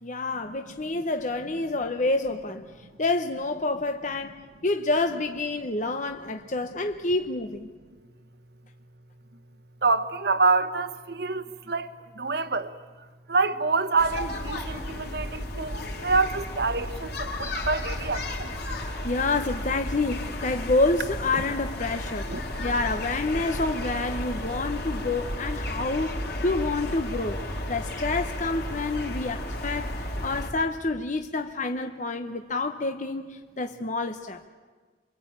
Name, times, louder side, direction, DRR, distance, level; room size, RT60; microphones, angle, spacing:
voice 1, 0.0-7.7 19.0-22.3 22.6-27.4 27.7-34.5, left 3 dB, 40° left, 1.0 m, -28 dB
voice 2, 9.8-12.7 13.3-18.6 21.3-21.4 22.3-22.4, right 3 dB, 60° right, 1.4 m, -27 dB
sound 1, 14.0-30.5, left 1 dB, 60° left, 3.9 m, -33 dB
28.5 x 23.5 x 8.8 m
head